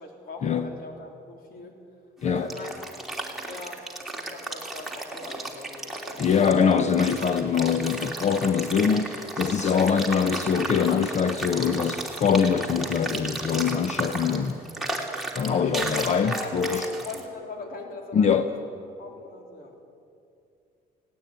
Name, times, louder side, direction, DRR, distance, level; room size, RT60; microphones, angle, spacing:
voice 1, 0.0-1.8 2.2-2.8 3.5-3.8 4.1-6.3 16.2-18.6 19.0-19.8, left 3 dB, 60° left, 2 dB, 3.9 m, -41 dB
sound 1, 2.2-17.2, right 2 dB, ahead, 3.0 m, -34 dB
voice 2, 6.2-14.6 15.4-16.9 18.1-18.5, left 6 dB, 45° left, 10 dB, 0.9 m, -23 dB
19.0 x 17.5 x 9.3 m, 2.5 s
cardioid pair, 110°, 17 cm